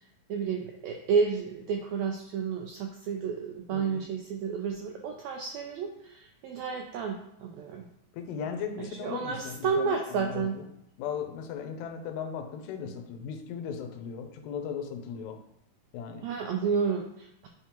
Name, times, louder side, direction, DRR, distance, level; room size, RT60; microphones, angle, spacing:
voice 1, 0.3-7.9 8.8-10.6 16.2-17.5, right 5 dB, 90° right, 2 dB, 1.6 m, -31 dB
voice 2, 3.7-4.0 8.1-10.5 11.0-15.4 15.9-16.3, left 7 dB, 75° left, 5 dB, 1.8 m, -37 dB
8.9 x 3.6 x 2.9 m, 0.79 s
omnidirectional pair, 3.7 m